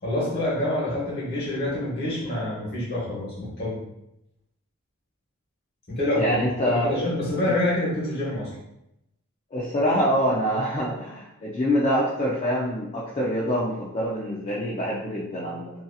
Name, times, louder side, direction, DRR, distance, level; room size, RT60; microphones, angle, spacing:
voice 1, 0.0-3.7 5.9-8.5, left 1 dB, 45° left, -6 dB, 1.1 m, -27 dB
voice 2, 6.2-6.9 7.5-7.6 9.5-15.7, equal, 30° left, -6 dB, 0.4 m, -25 dB
2.7 x 2.5 x 2.3 m, 0.86 s
head